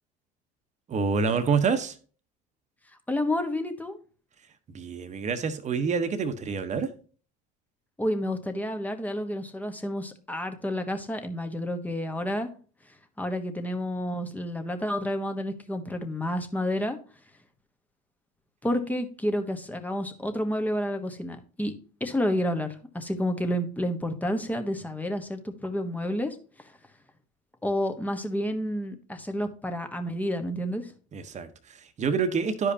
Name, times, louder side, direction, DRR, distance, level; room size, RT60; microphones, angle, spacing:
voice 1, 0.9-2.0 4.7-6.9 31.1-32.7, right 5 dB, 35° right, 1.1 m, -27 dB
voice 2, 3.1-4.0 8.0-12.5 13.2-17.0 18.6-21.7 22.0-26.3 27.6-30.9, equal, 10° left, 1.2 m, -30 dB
11.5 x 5.0 x 2.8 m
hypercardioid pair, 85°, 21 cm